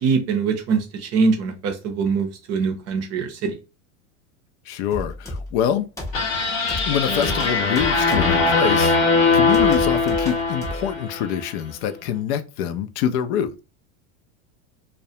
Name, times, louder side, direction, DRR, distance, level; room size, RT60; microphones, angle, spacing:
voice 1, 0.0-3.6, right 5 dB, 40° right, 0.6 m, -23 dB
voice 2, 4.7-5.9 6.8-9.0 9.3-13.6, left 9 dB, 60° left, 0.5 m, -25 dB
sound 1, 4.9-5.6 6.0-6.4 6.7-8.5 8.8-9.1 9.5-10.9, left 1 dB, 10° left, 0.5 m, -33 dB
sound 2, 6.1-11.4, left 4 dB, 85° left, 1.0 m, -20 dB
2.3 x 2.1 x 2.7 m
supercardioid pair, 110°, 39 cm